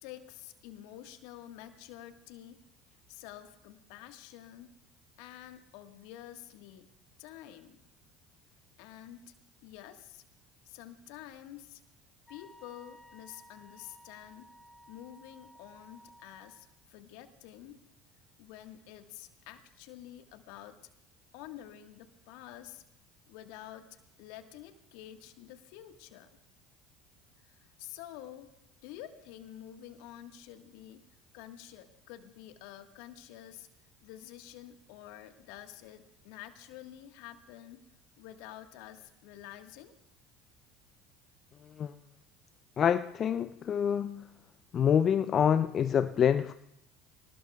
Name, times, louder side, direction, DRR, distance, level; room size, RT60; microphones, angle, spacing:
voice 1, 0.0-2.6 3.1-4.7 5.2-6.9 7.2-7.8 8.8-9.3 9.6-10.2 10.6-11.8 12.3-14.5 14.9-17.8 18.4-20.8 21.3-22.8 23.3-26.3 27.4-28.5 28.8-31.0 31.3-33.7 34.0-37.9 38.2-39.9, left 12 dB, 70° left, 1.4 m, -49 dB
Wind instrument woodwind instrument, 12.3-16.7, equal, 15° left, 2.3 m, -56 dB
voice 2, 42.8-44.3 44.7-46.5, left 8 dB, 45° left, 0.4 m, -26 dB
25.5 x 19.0 x 2.3 m
hypercardioid pair, 70°, 0 cm